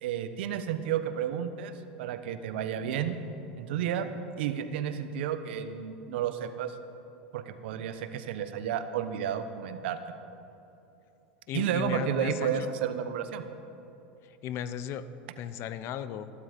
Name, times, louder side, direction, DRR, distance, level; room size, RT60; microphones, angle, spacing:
voice 1, 0.0-1.7 2.0-3.2 3.6-4.1 4.4-6.7 7.3-10.0 11.5-13.4, right 9 dB, 75° right, 9 dB, 1.0 m, -31 dB
voice 2, 11.5-12.7 14.2-15.1 15.4-16.3, left 9 dB, 50° left, 13 dB, 0.7 m, -36 dB
15.5 x 12.0 x 5.2 m, 2.9 s
supercardioid pair, 115°, 6 cm